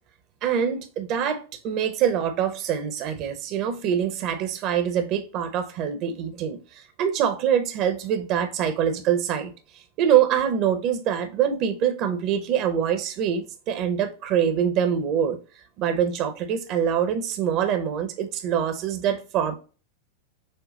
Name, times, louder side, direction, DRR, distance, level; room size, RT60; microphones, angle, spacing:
voice 1, 0.4-9.5 10.0-15.4 15.8-19.6, right 8 dB, 40° right, 0.7 m, -24 dB
6.5 x 2.2 x 3.0 m
figure-of-eight pair, 90°, 0 cm